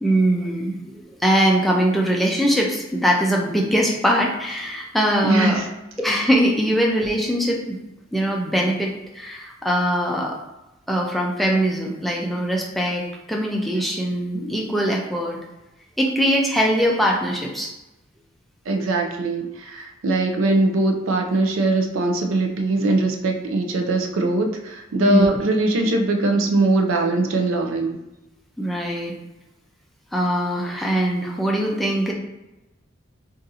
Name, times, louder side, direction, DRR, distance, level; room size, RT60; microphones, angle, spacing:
voice 1, 0.0-5.6 6.0-7.8 8.1-10.4 10.9-15.4 16.0-17.7 25.0-25.4 28.6-29.2 30.1-32.1, equal, ahead, -2 dB, 0.4 m, -22 dB
voice 2, 5.2-5.7 18.7-28.0, right 2 dB, 85° right, 3 dB, 0.5 m, -21 dB
2.6 x 2.5 x 4.0 m, 0.98 s
head